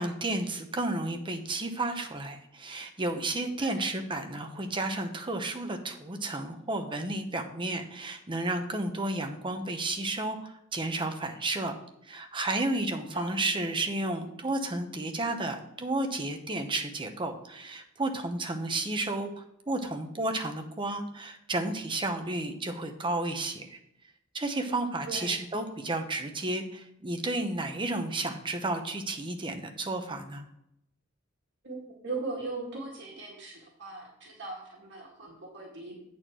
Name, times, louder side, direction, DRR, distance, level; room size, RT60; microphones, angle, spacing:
voice 1, 0.0-11.8 12.1-23.8 24.3-30.4, right 2 dB, 25° right, 5 dB, 0.9 m, -32 dB
voice 2, 31.6-36.0, right 3 dB, 60° right, -2 dB, 1.7 m, -39 dB
8.5 x 4.3 x 6.1 m, 0.79 s
head